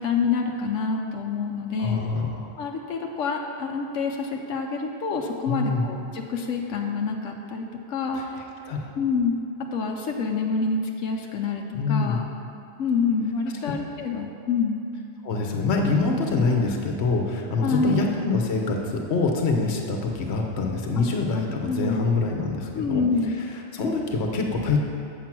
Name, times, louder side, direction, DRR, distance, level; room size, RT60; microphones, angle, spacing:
voice 1, 0.0-2.0 2.6-8.4 9.0-9.4 9.7-12.3 12.8-14.8 17.6-18.0 21.0-21.1 21.7-22.0 22.7-23.3, left 4 dB, 90° left, 1 dB, 1.1 m, -27 dB
voice 2, 1.8-2.5 5.5-5.8 8.1-8.2 8.7-8.9 11.7-12.2 13.6-13.7 15.2-23.0 23.4-24.8, left 3 dB, 60° left, 2 dB, 1.2 m, -25 dB
7.6 x 6.9 x 5.9 m, 2.6 s
omnidirectional pair, 1.3 m